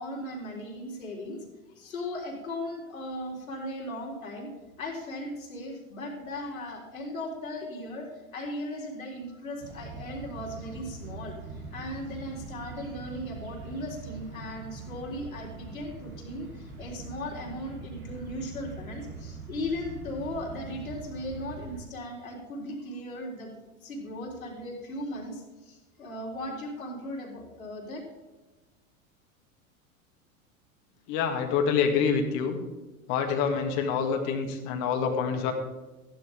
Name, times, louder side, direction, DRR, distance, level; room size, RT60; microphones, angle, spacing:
voice 1, 0.0-1.4 1.8-4.5 4.8-11.3 11.7-23.5 23.8-28.0, left 1 dB, 70° left, -2 dB, 3.9 m, -37 dB
sound 1, 9.6-21.8, right 4 dB, 75° right, 3.5 m, -42 dB
voice 2, 31.1-32.6 33.1-35.5, left 6 dB, 45° left, 5 dB, 2.1 m, -26 dB
15.5 x 10.5 x 3.6 m, 1.2 s
figure-of-eight pair, 85°, 43 cm